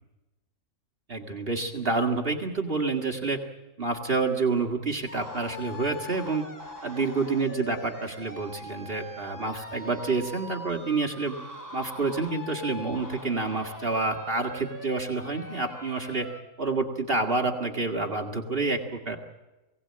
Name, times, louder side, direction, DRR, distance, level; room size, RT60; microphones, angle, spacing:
voice 1, 1.1-3.4 3.8-6.5 6.8-11.4 11.7-16.3 16.6-19.2, right 3 dB, 45° right, 2 dB, 2.0 m, -28 dB
sound 1, 5.1-16.4, left 1 dB, 15° left, 2.2 m, -42 dB
22.0 x 17.5 x 8.6 m, 1.1 s
omnidirectional pair, 1.4 m